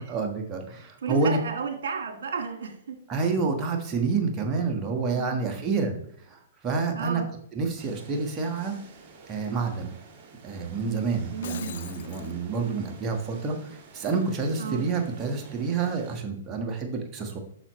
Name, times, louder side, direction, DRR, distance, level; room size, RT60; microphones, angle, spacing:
voice 1, 0.0-1.4 3.1-7.2 7.5-8.8 9.3-9.9 10.4-17.4, right 4 dB, 25° right, 3 dB, 1.5 m, -28 dB
voice 2, 1.0-3.0 5.1-5.4 6.9-7.3 11.3-11.8 14.6-14.8, right 5 dB, 75° right, 5 dB, 1.7 m, -32 dB
sound 1, 7.8-16.2, right 5 dB, 45° right, 2.0 m, -49 dB
Shatter, 11.4-12.3, left 9 dB, 65° left, 0.6 m, -42 dB
8.7 x 5.9 x 3.1 m, 0.68 s
hypercardioid pair, 125°, 0 cm